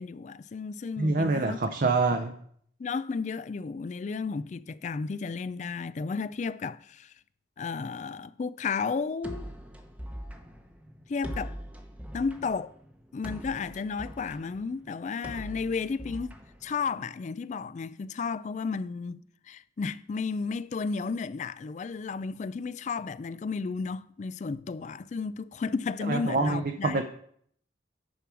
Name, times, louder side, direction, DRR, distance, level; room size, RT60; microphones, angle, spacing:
voice 1, 0.0-1.6 2.8-7.1 7.6-9.5 11.1-11.6 12.1-12.7 13.1-16.3 16.6-19.2 19.5-27.0, left 5 dB, 40° left, 0.3 m, -33 dB
voice 2, 1.0-2.3 26.1-27.0, right 3 dB, 45° right, 0.6 m, -26 dB
sound 1, 9.2-17.2, equal, 5° right, 0.8 m, -42 dB
10.0 x 4.7 x 6.1 m
head